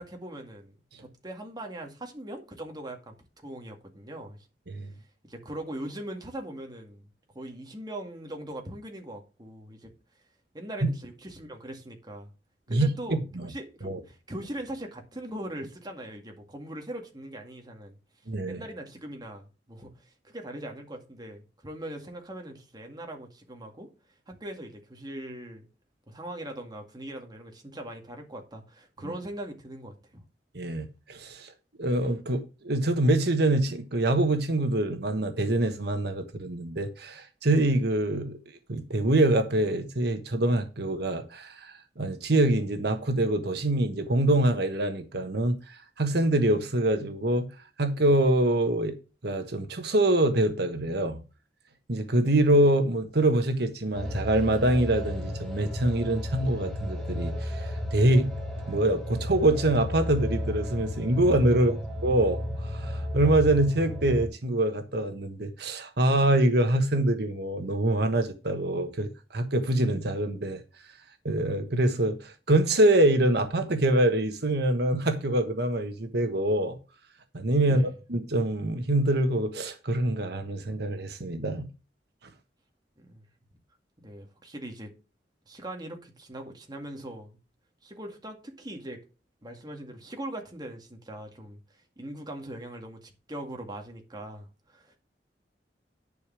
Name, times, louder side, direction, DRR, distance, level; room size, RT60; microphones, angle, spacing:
voice 1, 0.0-3.2 3.4-4.4 5.2-7.1 7.3-9.9 10.5-12.3 12.7-13.2 13.5-18.0 18.5-23.9 24.3-25.7 26.1-30.2 61.5-61.7 77.6-77.9 83.0-83.3 84.0-84.9 85.5-87.4 87.8-89.0 89.4-95.0, right 1 dB, 25° right, 2.1 m, -41 dB
voice 2, 12.7-13.5 13.8-14.0 18.3-18.6 30.5-31.5 31.8-38.4 38.7-47.5 47.8-49.0 49.2-51.2 51.9-58.3 58.7-61.7 62.0-70.6 71.2-76.8 77.3-81.7, right 1 dB, 65° right, 1.3 m, -25 dB
sound 1, 53.9-64.3, left 1 dB, ahead, 2.7 m, -33 dB
11.0 x 5.0 x 6.1 m
head